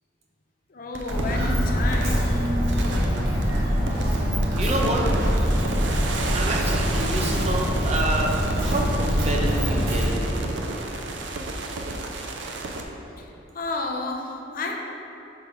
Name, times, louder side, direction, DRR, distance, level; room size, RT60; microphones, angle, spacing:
voice 1, 0.7-2.4 13.2-13.3 13.5-14.8, left 2 dB, 50° left, 2 dB, 0.6 m, -31 dB
sound 1, 0.9-12.8, right 2 dB, 75° right, 0.6 m, -33 dB
Walk footsteps, 1.1-10.1, equal, 55° right, 1.3 m, -24 dB
voice 2, 4.6-5.1 6.3-8.3 8.6-10.7, right 1 dB, 35° right, 0 dB, 0.6 m, -28 dB
5.1 x 4.8 x 4.9 m, 2.9 s
head